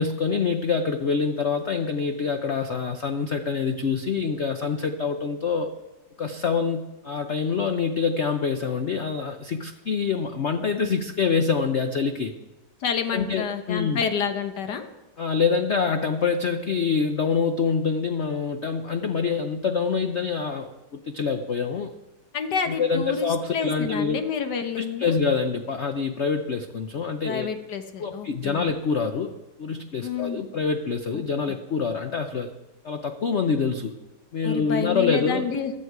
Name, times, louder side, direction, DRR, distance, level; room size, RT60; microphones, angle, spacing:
voice 1, 0.0-5.7 6.2-12.3 13.1-14.0 15.2-21.9 22.7-24.2 24.8-27.5 28.0-29.3 29.6-32.5 32.8-34.0 34.3-35.5, left 5 dB, 80° left, 8 dB, 0.6 m, -26 dB
voice 2, 12.8-14.9 22.3-25.2 27.2-28.7 30.0-30.4 31.1-31.2 34.4-35.7, left 6 dB, 60° left, 7 dB, 1.6 m, -29 dB
16.0 x 11.5 x 4.7 m, 1.0 s
omnidirectional pair, 2.2 m